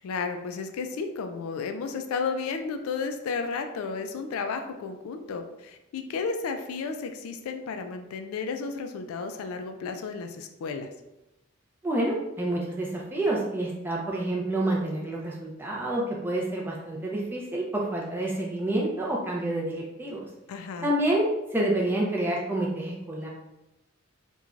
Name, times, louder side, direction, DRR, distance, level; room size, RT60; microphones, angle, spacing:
voice 1, 0.0-10.9 20.5-20.9, left 5 dB, 85° left, 6 dB, 0.3 m, -33 dB
voice 2, 11.8-20.3 20.8-23.3, right 1 dB, 10° right, -3 dB, 0.4 m, -28 dB
3.0 x 2.2 x 2.4 m, 0.93 s
head